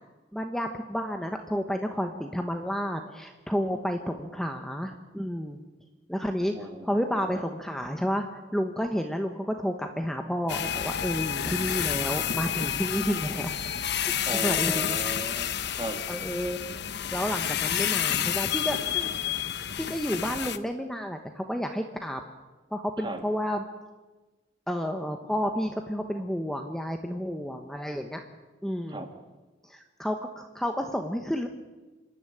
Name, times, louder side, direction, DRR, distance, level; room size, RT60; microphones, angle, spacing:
voice 1, 0.3-5.6 6.1-13.6 14.3-15.0 16.1-16.6 17.1-19.2 19.8-22.2 22.7-23.6 24.7-28.2 28.6-29.0 29.6-31.5, equal, ahead, 4 dB, 1.0 m, -31 dB
voice 2, 6.5-7.3 14.3-16.0 23.0-23.2 28.9-29.1, right 1 dB, 25° right, 6 dB, 2.1 m, -36 dB
sound 1, 10.5-20.6, left 9 dB, 65° left, 0.9 m, -29 dB
27.0 x 11.0 x 9.7 m, 1.2 s
head